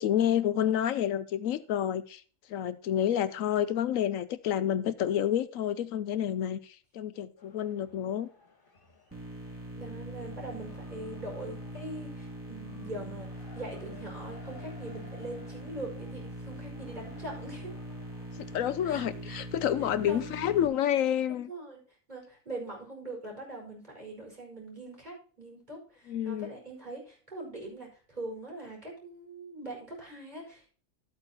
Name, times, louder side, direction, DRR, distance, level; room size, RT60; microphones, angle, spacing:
voice 1, 0.0-2.2 2.5-8.3 18.4-21.5 26.1-26.5, left 10 dB, 75° left, 1.0 m, -29 dB
sound 1, 7.4-19.5, left 4 dB, 40° left, 2.4 m, -57 dB
sound 2, 9.1-20.7, right 1 dB, 10° right, 3.0 m, -42 dB
voice 2, 9.8-17.7 18.8-19.4 20.0-20.2 21.3-21.8 22.1-30.7, right 2 dB, 30° right, 5.3 m, -42 dB
12.5 x 8.7 x 2.9 m
omnidirectional pair, 1.4 m